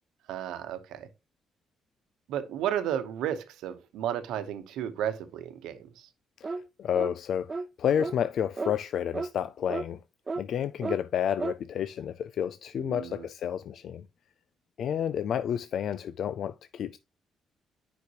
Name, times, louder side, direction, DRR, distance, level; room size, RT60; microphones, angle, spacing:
voice 1, 0.3-1.1 2.3-6.1 12.8-13.3, right 10 dB, 90° right, 1.0 m, -33 dB
voice 2, 6.4-10.0 10.4-14.1 14.8-17.0, left 9 dB, 65° left, 0.4 m, -30 dB
sound 1, 6.4-6.7 6.9-7.2 7.5-7.7 8.0-8.2 8.6-8.7 9.1-9.3 9.7-9.9 10.3-10.4 10.8-11.0 11.4-11.6, right 3 dB, 30° right, 0.3 m, -33 dB
9.5 x 5.1 x 3.0 m
cardioid pair, 90°, 0 cm